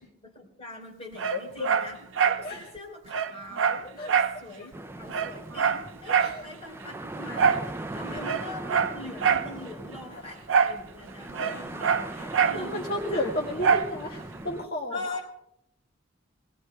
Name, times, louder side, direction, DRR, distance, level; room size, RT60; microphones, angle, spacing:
voice 1, 0.0-13.3 13.5-13.6 14.9-15.2, left 2 dB, 30° left, -2 dB, 4.4 m, -42 dB
Dog, 1.2-2.5 2.8-2.9 3.1-4.4 4.7-4.8 5.1-6.4 7.4-7.7 8.2-9.5 10.5-10.8 11.1-12.6 13.6-13.9 14.4-14.5, right 6 dB, 85° right, 0.6 m, -24 dB
voice 2, 1.3-1.7 2.4-2.6 4.0-4.1 6.2-6.4 8.0-8.2 10.1-10.2 11.5-11.6 12.1-15.2, left 1 dB, 55° left, -3 dB, 1.8 m, -33 dB
sound 1, 4.7-14.7, right 1 dB, 10° right, 0.5 m, -40 dB
27.0 x 19.0 x 2.3 m, 0.78 s
head